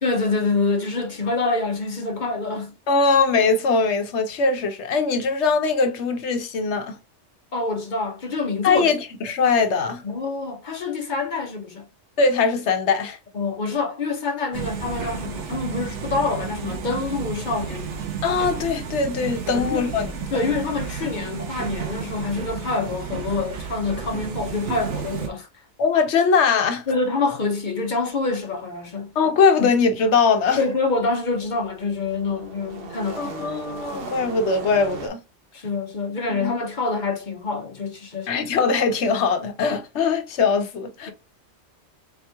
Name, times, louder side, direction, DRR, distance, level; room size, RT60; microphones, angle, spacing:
voice 1, 0.0-2.7 7.5-8.9 10.0-11.9 13.3-18.1 19.5-19.9 20.3-25.5 26.9-29.1 29.6-29.7 30.6-33.5 33.9-34.1 35.5-38.3, left 3 dB, 45° left, 0.7 m, -26 dB
voice 2, 2.9-7.0 8.6-10.0 12.2-13.2 18.2-20.1 25.8-26.8 29.2-30.6 33.2-35.2 36.4-36.5 38.3-41.1, left 4 dB, 70° left, 1.0 m, -21 dB
sound 1, 14.5-25.3, right 7 dB, 75° right, 1.1 m, -32 dB
sound 2, 31.2-35.1, right 4 dB, 55° right, 1.0 m, -37 dB
3.5 x 2.9 x 3.4 m
omnidirectional pair, 1.2 m